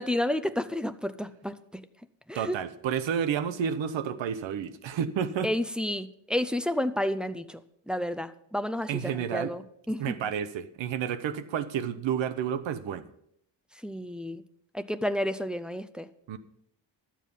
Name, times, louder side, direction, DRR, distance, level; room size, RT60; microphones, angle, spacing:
voice 1, 0.0-1.8 2.3-2.6 5.4-7.6 7.9-10.2 13.7-14.4 14.7-16.1, left 1 dB, ahead, 10 dB, 0.4 m, -31 dB
voice 2, 2.3-5.5 8.9-9.5 10.0-13.1 16.3-16.4, right 8 dB, 85° right, 13 dB, 0.9 m, -30 dB
12.0 x 7.4 x 5.4 m, 0.73 s
cardioid pair, 115°, 44 cm